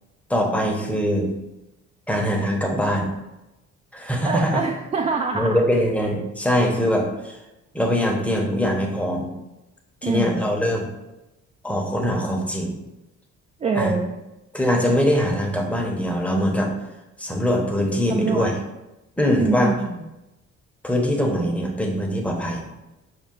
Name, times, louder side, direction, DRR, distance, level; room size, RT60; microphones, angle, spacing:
voice 1, 0.3-1.3 2.1-3.1 3.9-4.6 5.3-7.4 7.7-9.3 10.0-10.9 11.6-12.8 13.7-13.9 14.5-16.7 17.2-18.5 19.2-19.7 20.8-22.7, equal, 5° left, 0 dB, 0.8 m, -22 dB
voice 2, 4.2-5.6 10.0-10.5 13.6-14.1 18.1-18.5 19.4-20.0, right 4 dB, 25° right, 3 dB, 0.3 m, -25 dB
5.5 x 2.2 x 3.7 m, 0.98 s
cardioid pair, 90°, 30 cm